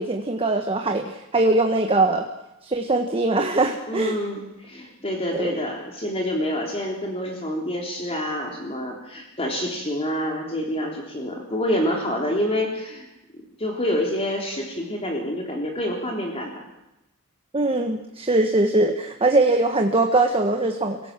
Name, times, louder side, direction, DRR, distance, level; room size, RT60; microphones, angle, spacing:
voice 1, 0.0-2.2 2.6-4.1 5.4-5.6 17.5-21.0, right 2 dB, 25° right, 4 dB, 1.5 m, -21 dB
voice 2, 3.9-13.1 13.6-16.6, equal, 25° left, 0 dB, 3.6 m, -27 dB
28.5 x 17.5 x 7.6 m, 0.94 s
head